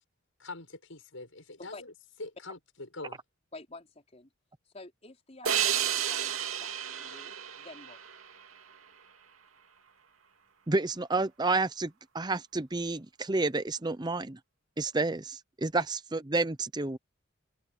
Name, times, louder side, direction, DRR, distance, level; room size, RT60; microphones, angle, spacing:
voice 1, 0.4-1.9 2.2-2.6 2.9-3.2, left 2 dB, 75° left, 7.3 m, -43 dB
voice 2, 3.5-4.3 4.7-8.0 15.7-15.8, left 3 dB, 30° left, 4.4 m, -49 dB
sound 1, 5.5-8.8, right 9 dB, 85° right, 2.5 m, -32 dB
voice 3, 10.7-14.4 14.8-17.0, right 3 dB, 20° right, 0.7 m, -30 dB
head